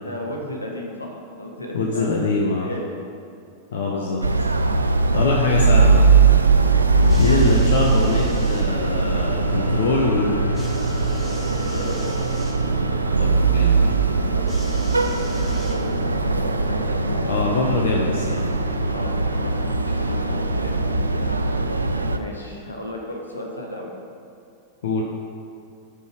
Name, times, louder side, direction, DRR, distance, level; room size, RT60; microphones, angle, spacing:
voice 1, 0.0-2.8 3.8-4.6 5.1-5.3 7.9-8.0 11.5-12.1 14.3-14.5 14.7-14.9 15.4-17.3 18.9-20.8 21.1-21.6 22.1-23.9, left 1 dB, 80° left, 0 dB, 1.0 m, -35 dB
voice 2, 1.7-2.7 3.7-4.2 5.1-6.0 7.2-10.4 13.2-13.8 17.1-18.5 24.8-25.0, left 4 dB, 60° left, -2 dB, 0.7 m, -23 dB
sound 1, 4.2-22.2, right 4 dB, 80° right, 0.3 m, -20 dB
sound 2, 5.0-22.3, left 2 dB, 25° left, 1.1 m, -37 dB
sound 3, 7.0-8.7 10.5-12.6 14.5-16.2 17.1-17.2, left 1 dB, 5° left, 1.2 m, -42 dB
5.4 x 4.8 x 5.9 m, 2.4 s
figure-of-eight pair, 90°, 0 cm